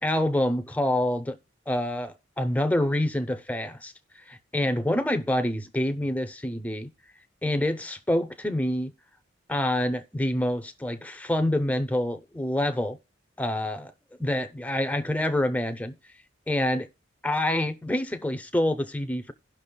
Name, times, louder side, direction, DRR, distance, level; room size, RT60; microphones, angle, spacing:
voice 1, 0.0-1.4 1.7-6.9 7.4-8.9 9.5-13.0 13.4-13.9 14.2-16.0 16.5-16.9 17.2-19.3, left 1 dB, 10° left, 0.6 m, -27 dB
18.0 x 6.0 x 2.3 m
head